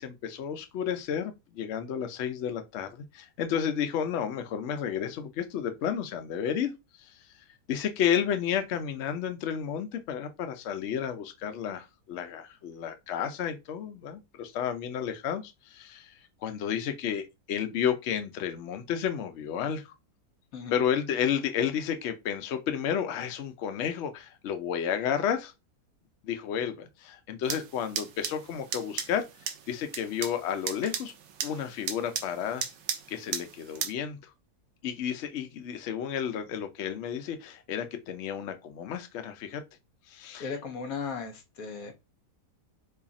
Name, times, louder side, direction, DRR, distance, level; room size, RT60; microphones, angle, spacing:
voice 1, 0.0-6.7 7.0-7.3 7.7-16.1 16.4-19.9 20.7-25.5 26.2-29.2 29.7-31.1 31.4-32.6 33.1-34.3 34.8-39.6 40.1-40.5, left 8 dB, 85° left, 0.6 m, -32 dB
sound 1, 27.4-33.9, right 8 dB, 90° right, 1.3 m, -37 dB
voice 2, 40.4-41.9, left 5 dB, 60° left, 1.1 m, -36 dB
3.3 x 2.4 x 3.9 m
omnidirectional pair, 1.8 m